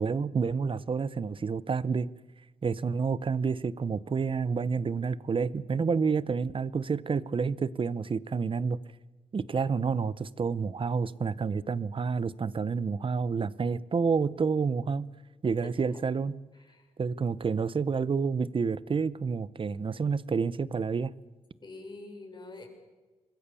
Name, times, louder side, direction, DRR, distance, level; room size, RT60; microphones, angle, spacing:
voice 1, 0.0-2.1 2.6-8.8 9.3-15.1 15.4-16.4 17.0-21.1, right 5 dB, 45° right, 18 dB, 1.0 m, -29 dB
voice 2, 15.6-16.0 16.6-16.9 21.6-22.7, left 2 dB, 35° left, 3 dB, 6.9 m, -45 dB
26.0 x 21.0 x 7.1 m, 1.3 s
cardioid pair, 80°, 12 cm